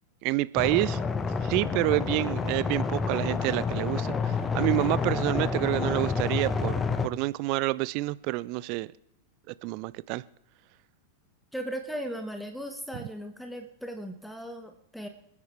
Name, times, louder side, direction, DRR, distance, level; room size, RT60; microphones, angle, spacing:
voice 1, 0.2-1.0 1.4-8.9 9.6-10.2 12.9-13.0, right 21 dB, 45° right, 19 dB, 0.4 m, -28 dB
sound 1, 0.6-7.1, left 5 dB, 20° left, 1.0 m, -29 dB
voice 2, 11.5-15.1, equal, ahead, 6 dB, 1.3 m, -37 dB
26.5 x 9.6 x 3.4 m, 0.76 s
figure-of-eight pair, 90°, 0 cm